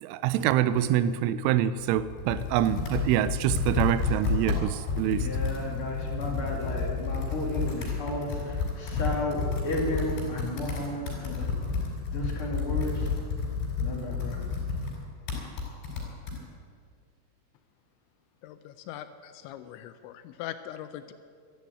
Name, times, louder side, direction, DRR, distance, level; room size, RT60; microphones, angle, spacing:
voice 1, 0.0-5.3, right 11 dB, 85° right, 14 dB, 3.1 m, -26 dB
Computer keyboard, 1.8-16.4, left 5 dB, 60° left, 6.2 m, -31 dB
voice 2, 4.9-11.5 12.1-13.1 13.8-14.4, left 1 dB, 40° left, -2 dB, 2.2 m, -33 dB
voice 3, 18.4-21.1, left 11 dB, 80° left, 11 dB, 2.7 m, -41 dB
13.0 x 11.5 x 9.4 m, 2.1 s
omnidirectional pair, 5.7 m